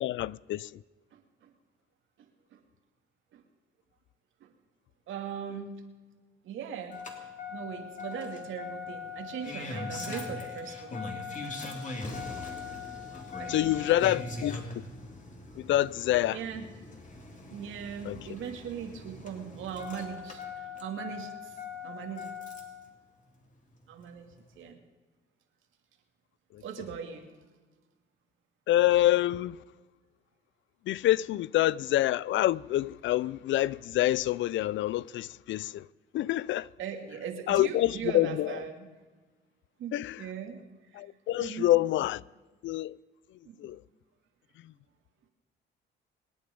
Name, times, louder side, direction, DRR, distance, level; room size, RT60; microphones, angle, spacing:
voice 1, 0.0-0.7 13.5-14.6 15.6-16.4 18.1-18.2 26.5-26.6 28.7-29.6 30.9-35.9 36.1-36.7 37.5-38.6 39.9-40.2 40.9-42.2 42.6-43.0 43.6-43.8, left 14 dB, 70° left, 0.4 m, -27 dB
voice 2, 1.1-1.5 2.5-2.6 3.3-3.4 5.1-5.7 6.4-11.0 13.4-14.3 16.3-16.7 17.5-21.5 21.8-22.3 23.9-24.8 26.6-27.3 36.8-38.9 39.8-40.6 40.9-41.0 41.4-41.7 43.4-43.8, right 8 dB, 80° right, 2.4 m, -40 dB
Engine starting, 6.9-22.8 24.1-24.2, left 4 dB, 40° left, 3.0 m, -40 dB
26.0 x 9.4 x 5.3 m
cardioid pair, 90°, 20 cm